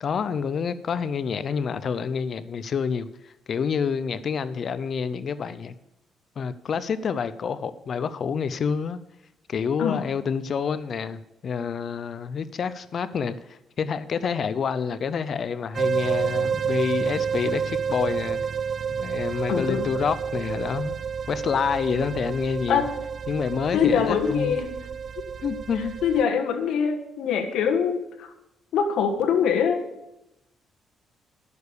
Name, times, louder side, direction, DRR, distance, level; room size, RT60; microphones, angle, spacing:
voice 1, 0.0-5.7 6.4-9.0 9.5-18.4 18.9-21.0 21.3-22.8 23.3-24.5 25.4-26.0, left 6 dB, 55° left, 15 dB, 0.5 m, -28 dB
sound 1, 15.7-26.2, right 6 dB, 45° right, 0.3 m, -29 dB
voice 2, 19.5-19.9 22.7-22.9 23.7-24.7 25.2-25.3 26.0-28.3 28.7-29.8, left 7 dB, 80° left, 5 dB, 1.4 m, -23 dB
11.0 x 6.9 x 6.8 m, 0.89 s
cardioid pair, 90°, 0 cm